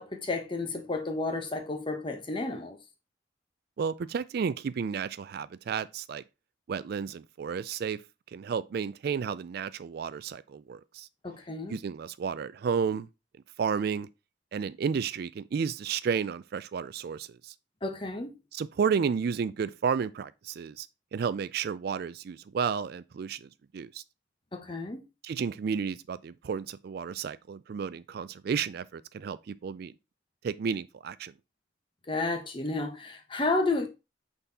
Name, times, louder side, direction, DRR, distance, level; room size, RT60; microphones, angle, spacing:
voice 1, 0.0-2.8 11.2-11.8 17.8-18.3 24.5-25.0 32.1-33.9, left 2 dB, 30° left, 1.1 m, -31 dB
voice 2, 3.8-6.2 6.7-8.0 8.3-11.1 11.7-13.1 13.6-14.1 14.5-17.5 18.5-20.9 21.1-24.0 25.2-29.9 30.4-31.3, right 6 dB, 60° right, 0.3 m, -32 dB
5.7 x 4.0 x 4.1 m
head